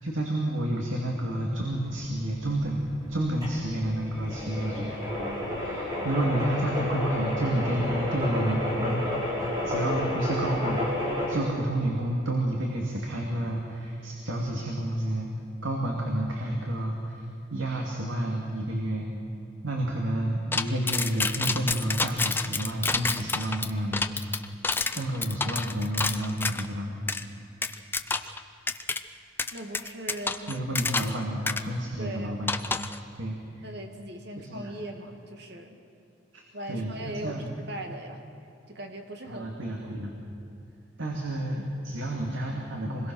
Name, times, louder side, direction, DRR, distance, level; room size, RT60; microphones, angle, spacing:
voice 1, 0.0-4.9 5.6-9.4 9.6-10.9 11.3-15.3 15.6-19.1 19.6-24.2 24.9-26.9 30.5-32.5 33.1-33.6 34.4-34.7 36.3-36.4 36.7-37.5 39.3-40.1 41.0-43.1, right 1 dB, 80° right, -1 dB, 2.5 m, -30 dB
sound 1, 2.0-11.4, left 1 dB, 20° right, 5.3 m, -31 dB
sound 2, 20.5-26.7 27.1-27.2 27.6-28.4 28.7-29.0 29.4-31.2 31.5-31.6 32.5-33.0, left 3 dB, 10° left, 0.5 m, -29 dB
voice 2, 29.5-30.6 32.0-32.4 33.6-35.8 36.5-38.2 38.7-39.5 39.8-40.0, right 1 dB, 55° right, 3 dB, 2.2 m, -39 dB
25.5 x 21.5 x 6.3 m, 2.7 s
head